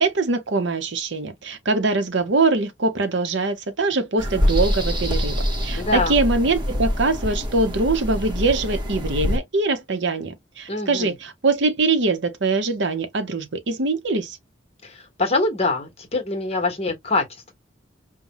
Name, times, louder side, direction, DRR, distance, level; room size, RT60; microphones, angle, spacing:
voice 1, 0.0-14.4, right 3 dB, 65° right, 0.8 m, -23 dB
sound 1, 4.2-9.4, left 1 dB, 20° right, 1.0 m, -25 dB
voice 2, 5.8-6.2 10.7-11.1 14.8-17.5, left 3 dB, 30° left, 1.2 m, -24 dB
5.4 x 2.2 x 3.0 m
head